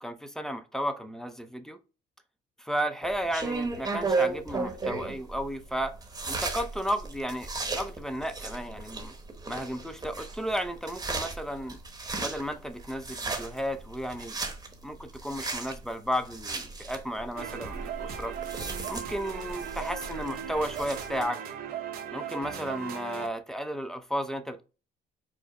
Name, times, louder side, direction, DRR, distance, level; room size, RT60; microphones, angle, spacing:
voice 1, 0.0-1.8 2.6-5.9 6.3-9.1 9.5-11.8 12.2-14.4 14.8-18.3 18.9-21.4 22.1-24.6, equal, 5° left, 0.5 m, -33 dB
sound 1, 3.0-21.2, right 3 dB, 20° right, 1.0 m, -35 dB
sound 2, 17.3-23.3, right 8 dB, 65° right, 0.8 m, -38 dB
4.9 x 2.0 x 4.6 m
cardioid pair, 110°, 17 cm